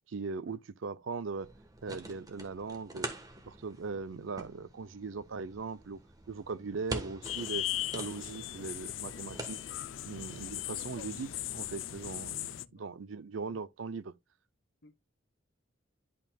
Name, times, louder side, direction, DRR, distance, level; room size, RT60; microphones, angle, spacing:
voice 1, 0.1-1.5 1.8-3.1 3.5-6.0 6.3-9.6 10.1-14.1, right 4 dB, 80° right, 0.6 m, -40 dB
sound 1, 1.4-12.3, right 2 dB, 20° right, 1.3 m, -46 dB
sound 2, 7.2-12.7, left 14 dB, 75° left, 0.4 m, -38 dB
voice 2, 10.1-11.1 12.6-12.9 14.8-15.0, left 3 dB, 55° left, 1.2 m, -57 dB
11.0 x 5.4 x 2.3 m
head